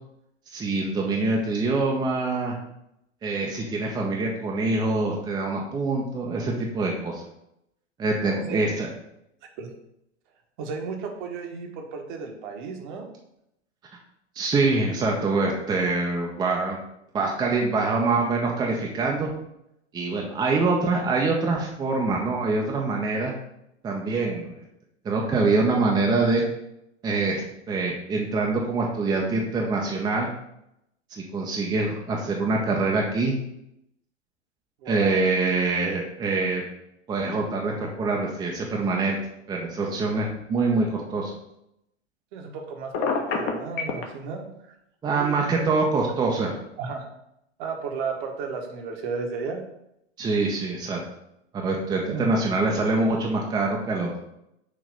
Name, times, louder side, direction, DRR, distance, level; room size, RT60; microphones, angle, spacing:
voice 1, 0.5-2.6 3.2-7.2 8.0-8.9 14.4-16.8 17.1-19.3 19.9-23.3 23.8-24.6 25.0-26.4 27.0-30.3 31.1-33.4 34.9-36.6 37.1-39.2 39.5-41.3 45.0-46.5 50.2-51.0 51.5-54.1, right 3 dB, 10° right, -1 dB, 0.6 m, -25 dB
voice 2, 8.2-8.7 9.6-9.7 10.6-13.1 34.8-35.2 42.3-44.7 45.0-46.0 46.8-47.1 47.6-49.6 52.0-52.3, right 5 dB, 45° right, 3 dB, 1.1 m, -34 dB
Telephone, 42.9-44.0, left 5 dB, 30° left, 0.9 m, -25 dB
6.6 x 2.9 x 5.2 m, 0.81 s
figure-of-eight pair, 95°, 35 cm